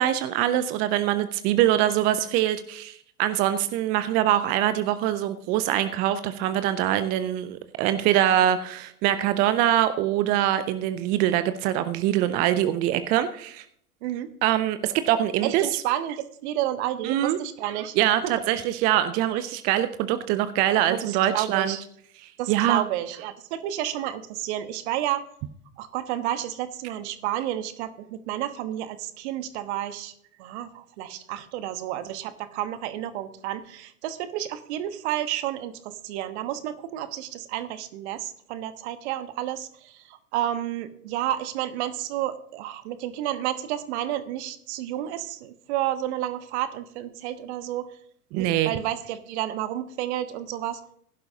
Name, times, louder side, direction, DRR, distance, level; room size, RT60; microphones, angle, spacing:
voice 1, 0.0-13.6 14.4-15.7 17.0-17.4 18.0-21.8 22.2-22.8 48.3-48.7, right 12 dB, 20° right, 12 dB, 0.4 m, -23 dB
voice 2, 15.4-18.0 18.2-18.4 20.8-21.8 22.4-25.3 25.8-30.1 30.4-47.9 48.4-50.8, right 12 dB, 50° right, 11 dB, 1.2 m, -31 dB
16.0 x 11.5 x 2.8 m, 0.66 s
figure-of-eight pair, 95°, 45 cm